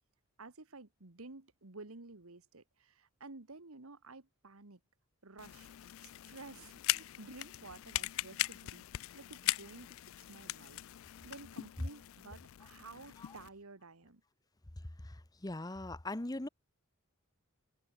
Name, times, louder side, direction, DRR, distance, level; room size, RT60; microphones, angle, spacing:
voice 1, 0.4-4.8 5.2-5.7 6.0-8.8 9.1-10.8 11.2-14.2, right 3 dB, 80° right, 1.6 m, -52 dB
sound 1, 5.4-13.5, left 16 dB, 70° left, 0.3 m, -40 dB
voice 2, 15.4-16.5, left 2 dB, 15° left, 0.8 m, -39 dB
head